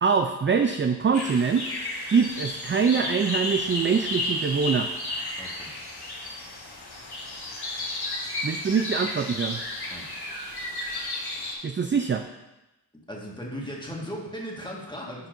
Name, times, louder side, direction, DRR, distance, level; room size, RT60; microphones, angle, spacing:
voice 1, 0.0-1.7 2.1-4.9 8.4-9.6 11.6-12.3, right 6 dB, 30° right, 6 dB, 0.4 m, -24 dB
sound 1, 1.1-11.5, left 2 dB, 75° left, 1.5 m, -33 dB
voice 2, 5.4-5.7 9.9-10.1 13.1-15.3, equal, 10° left, -3 dB, 1.6 m, -37 dB
10.5 x 4.5 x 2.6 m, 1.0 s
cardioid pair, 55°, 40 cm